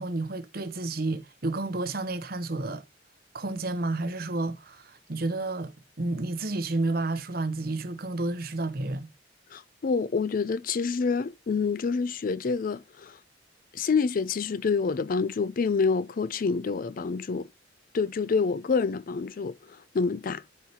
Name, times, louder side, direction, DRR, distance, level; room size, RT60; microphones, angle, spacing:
voice 1, 0.0-2.8 3.3-9.1, right 2 dB, 55° right, 1.0 m, -31 dB
voice 2, 9.5-13.2 13.7-17.5 17.9-20.4, left 5 dB, 50° left, 0.4 m, -27 dB
13.0 x 4.5 x 2.9 m
head